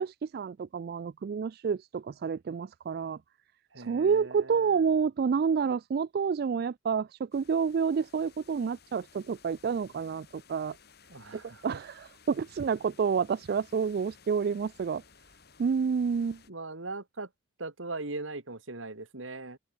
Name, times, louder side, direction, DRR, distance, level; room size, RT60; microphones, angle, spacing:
voice 1, 0.0-3.2 3.8-10.8 11.3-15.0 15.6-16.4, right 6 dB, 50° right, 0.3 m, -29 dB
voice 2, 3.7-4.8 11.1-11.8 16.5-17.3 17.6-19.6, right 2 dB, 80° right, 2.6 m, -40 dB
sound 1, 7.3-16.5, left 6 dB, 55° left, 4.7 m, -58 dB
head